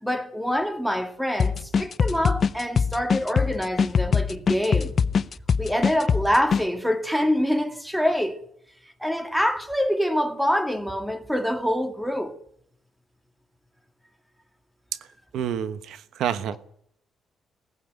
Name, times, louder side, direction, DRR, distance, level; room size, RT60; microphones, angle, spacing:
voice 1, 0.0-4.9 5.6-8.4 9.0-12.4, equal, ahead, 2.1 m, -25 dB
sound 1, 1.4-6.6, left 6 dB, 45° left, 0.7 m, -22 dB
voice 2, 15.3-16.6, right 9 dB, 80° right, 1.1 m, -28 dB
18.5 x 15.5 x 9.2 m
cardioid pair, 90°, 0 cm